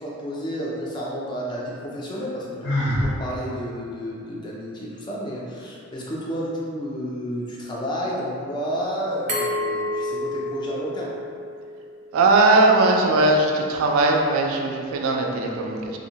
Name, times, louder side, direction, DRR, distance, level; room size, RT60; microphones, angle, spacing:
voice 1, 0.0-11.2, equal, 20° left, -5 dB, 0.3 m, -31 dB
Sigh, 2.6-3.1, left 1 dB, 75° left, 0.9 m, -22 dB
Glass, 9.3-12.1, left 1 dB, 35° right, 0.6 m, -29 dB
voice 2, 12.1-16.0, right 2 dB, 80° right, 3 dB, 0.3 m, -19 dB
2.5 x 2.0 x 2.7 m, 2.3 s
head